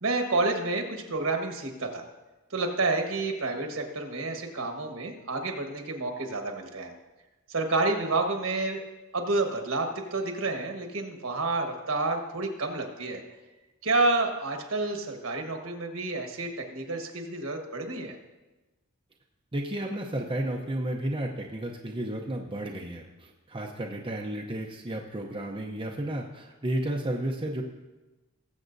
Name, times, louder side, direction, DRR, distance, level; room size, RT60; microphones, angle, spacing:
voice 1, 0.0-2.0 2.5-6.9 7.5-8.8 9.1-13.2 13.8-18.2, right 3 dB, 65° right, 3 dB, 1.4 m, -29 dB
voice 2, 19.5-27.6, right 1 dB, 25° right, 0 dB, 0.7 m, -32 dB
20.5 x 7.5 x 2.7 m, 1.1 s
head